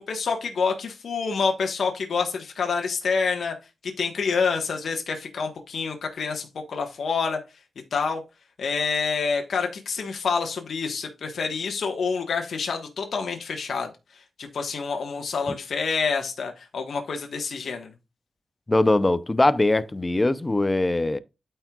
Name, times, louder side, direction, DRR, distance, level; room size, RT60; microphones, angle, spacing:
voice 1, 0.1-3.5 3.8-7.4 7.9-8.2 8.6-13.9 14.4-17.9, left 5 dB, 75° left, 1.2 m, -27 dB
voice 2, 18.7-21.2, left 2 dB, 20° left, 0.6 m, -21 dB
12.5 x 4.5 x 2.3 m
wide cardioid pair, 100°, 0 cm